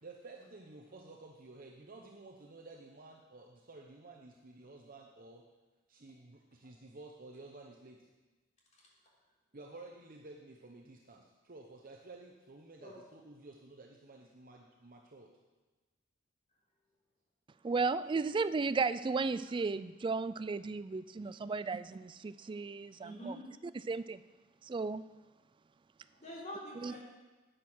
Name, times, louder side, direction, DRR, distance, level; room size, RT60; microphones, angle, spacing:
voice 1, 0.0-5.4 5.9-8.1 9.5-15.3, right 2 dB, 45° right, 0 dB, 0.9 m, -53 dB
voice 2, 17.6-23.3 23.8-24.2 24.7-25.0 26.8-27.0, right 4 dB, 25° right, 14 dB, 0.3 m, -34 dB
voice 3, 21.2-21.5 23.0-23.4 26.1-27.0, equal, 40° left, -4 dB, 3.4 m, -46 dB
10.5 x 9.0 x 6.3 m, 1.2 s
head